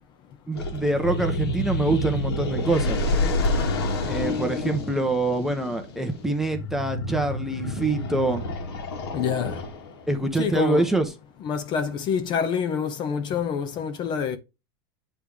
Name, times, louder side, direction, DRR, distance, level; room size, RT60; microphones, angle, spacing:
sound 1, 0.5-10.1, left 2 dB, 85° left, 1.8 m, -28 dB
voice 1, 0.5-3.0 4.1-8.5 10.1-11.1, right 2 dB, 5° right, 0.9 m, -25 dB
voice 2, 9.1-9.6 10.4-10.9 11.4-14.4, left 7 dB, 35° left, 0.9 m, -26 dB
8.9 x 3.3 x 3.5 m
supercardioid pair, 135°, 13 cm